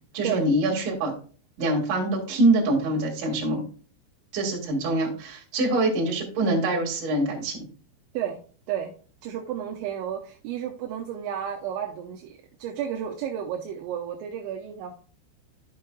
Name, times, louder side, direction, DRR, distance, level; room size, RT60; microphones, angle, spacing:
voice 1, 0.1-1.1 1.6-3.7 4.3-7.7, right 2 dB, 50° right, -2 dB, 3.0 m, -24 dB
voice 2, 9.2-14.9, right 9 dB, 80° right, 0 dB, 2.8 m, -32 dB
13.5 x 5.6 x 2.3 m, 0.40 s
omnidirectional pair, 5.7 m